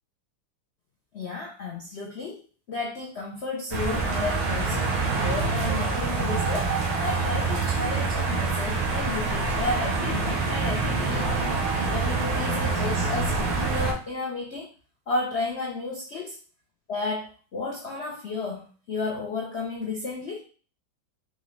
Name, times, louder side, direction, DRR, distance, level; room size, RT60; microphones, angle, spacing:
voice 1, 1.1-2.4 2.7-6.7 7.0-11.3 11.7-14.7 15.1-16.4 16.9-20.4, left 3 dB, 70° left, -3 dB, 0.6 m, -32 dB
sound 1, 3.7-13.9, right 4 dB, 85° right, 1.7 m, -26 dB
5.3 x 2.5 x 3.1 m, 0.39 s
omnidirectional pair, 2.2 m